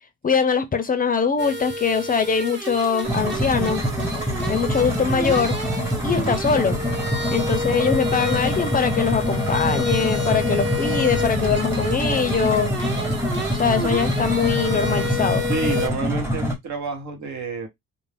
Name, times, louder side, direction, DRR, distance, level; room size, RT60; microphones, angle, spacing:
voice 1, 0.2-3.8 4.5-5.6 6.0-6.8 7.3-12.7 13.6-15.4, left 6 dB, 30° left, 0.5 m, -22 dB
sound 1, 1.4-15.9, left 1 dB, 40° right, 1.0 m, -30 dB
sound 2, 3.0-16.5, equal, 10° right, 0.9 m, -25 dB
voice 2, 15.5-17.7, right 4 dB, 70° right, 1.0 m, -29 dB
2.5 x 2.0 x 3.2 m
cardioid pair, 90°, 30 cm